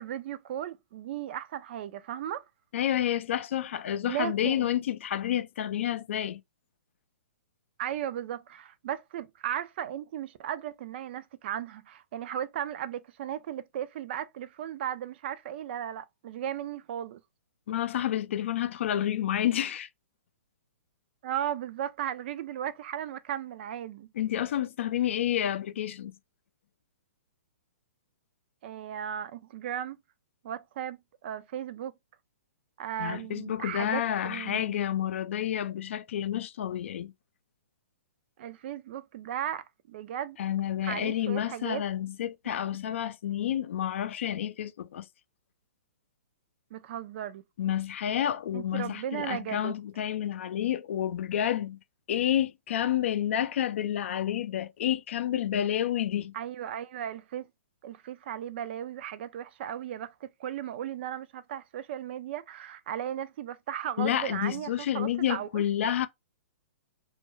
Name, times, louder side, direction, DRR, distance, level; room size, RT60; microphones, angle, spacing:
voice 1, 0.0-2.4 4.1-4.7 7.8-17.2 21.2-24.1 28.6-30.0 30.4-31.9 32.8-34.8 38.4-40.4 40.8-41.8 46.7-47.4 48.5-49.7 56.3-57.5 57.8-65.6, right 10 dB, 50° right, 0.4 m, -36 dB
voice 2, 2.7-6.4 17.7-19.9 24.2-26.1 33.0-37.1 40.4-45.1 47.6-51.8 52.1-56.3 64.0-66.1, left 11 dB, 60° left, 0.4 m, -29 dB
2.3 x 2.2 x 3.0 m
hypercardioid pair, 130°, 7 cm